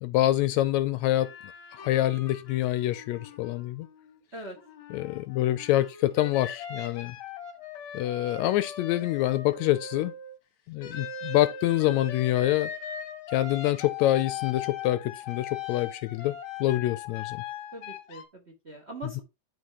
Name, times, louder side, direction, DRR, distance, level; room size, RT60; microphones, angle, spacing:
voice 1, 0.0-1.3 1.7-3.9 4.9-7.2 7.9-10.1 10.7-12.7 13.3-17.4, left 15 dB, 80° left, 1.8 m, -26 dB
sound 1, 1.2-4.2 4.5-10.4 10.8-18.2, left 7 dB, 55° left, 1.6 m, -40 dB
voice 2, 17.7-19.2, right 2 dB, 30° right, 1.2 m, -42 dB
12.0 x 4.3 x 3.0 m
omnidirectional pair, 3.4 m